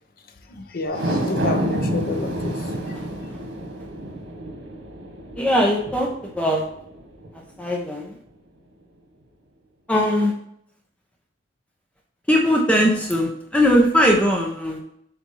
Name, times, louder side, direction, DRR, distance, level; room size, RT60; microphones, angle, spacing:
voice 1, 0.5-2.6, left 3 dB, 50° left, 0.7 m, -29 dB
sound 1, 0.9-7.4 7.8-7.9, right 1 dB, 85° right, 1.4 m, -29 dB
voice 2, 5.4-6.1 6.3-6.6 7.3-8.1 9.9-10.3 12.3-14.8, equal, 5° left, 0.7 m, -20 dB
7.4 x 2.5 x 5.4 m
head